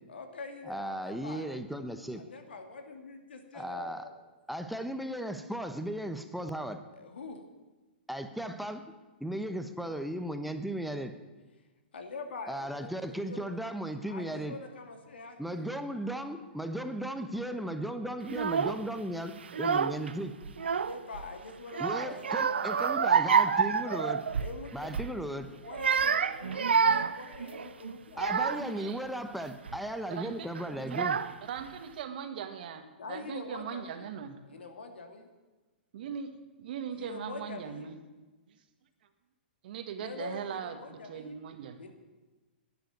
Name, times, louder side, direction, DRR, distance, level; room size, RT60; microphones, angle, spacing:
voice 1, 0.1-1.5 2.1-4.1 6.9-7.4 11.9-13.6 14.1-15.8 20.6-23.3 24.4-24.9 25.5-28.5 33.0-34.1 34.5-35.3 36.9-37.9 40.0-41.4 41.8-41.9, left 3 dB, 75° left, 6 dB, 2.5 m, -44 dB
voice 2, 0.7-2.2 3.5-4.0 4.5-6.8 8.1-8.8 9.2-11.1 12.5-14.6 15.4-20.3 21.8-24.2 24.7-25.5 28.2-31.2, right 1 dB, ahead, 7 dB, 1.0 m, -36 dB
Child speech kid speaking / Crying sobbing, 18.3-18.8 19.4-20.1 20.4-21.2 21.7-24.6 24.9-25.1 25.6-28.8 29.4-29.8 30.5-30.6 30.9-31.6, right 6 dB, 80° right, 0.7 m, -28 dB
voice 3, 30.1-30.5 30.9-34.4 35.9-36.3 36.6-38.0 39.6-41.8, right 8 dB, 60° right, 8 dB, 1.7 m, -40 dB
11.5 x 10.5 x 9.4 m, 1.2 s
hypercardioid pair, 120°, 6 cm